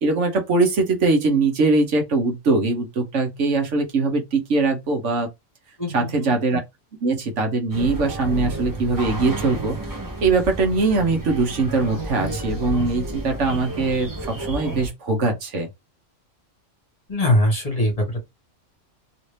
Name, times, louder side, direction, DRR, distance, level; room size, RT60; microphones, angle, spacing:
voice 1, 0.0-5.3 5.9-6.6 7.0-9.8 10.2-15.7, right 3 dB, 70° right, 1.2 m, -21 dB
voice 2, 5.8-6.4 17.1-18.2, left 1 dB, 30° left, 1.3 m, -22 dB
sound 1, 7.7-14.9, right 2 dB, 20° right, 0.9 m, -31 dB
3.1 x 2.7 x 3.2 m
omnidirectional pair, 1.3 m